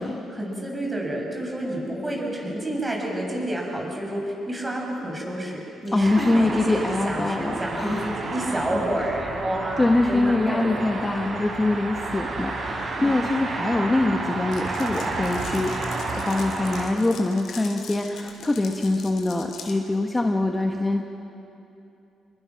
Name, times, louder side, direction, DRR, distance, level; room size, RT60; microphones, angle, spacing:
voice 1, 0.3-11.4 13.0-13.2, right 1 dB, 20° right, -1 dB, 7.1 m, -29 dB
voice 2, 5.9-8.2 9.0-9.1 9.8-15.7 16.3-21.0, left 2 dB, 20° left, 2 dB, 1.4 m, -24 dB
sound 1, 6.0-16.8, right 3 dB, 55° right, 5.0 m, -31 dB
Glass, 14.5-19.8, left 7 dB, 75° left, 3.2 m, -42 dB
28.5 x 22.0 x 6.0 m, 2.8 s
cardioid pair, 90°, 0 cm